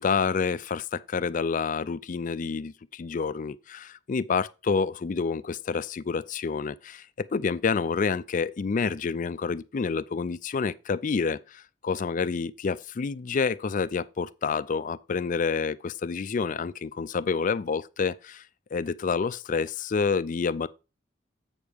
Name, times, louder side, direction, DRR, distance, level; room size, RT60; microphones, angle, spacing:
voice 1, 0.0-18.4 18.7-20.7, left 5 dB, 45° left, 0.4 m, -28 dB
7.9 x 6.5 x 3.5 m
head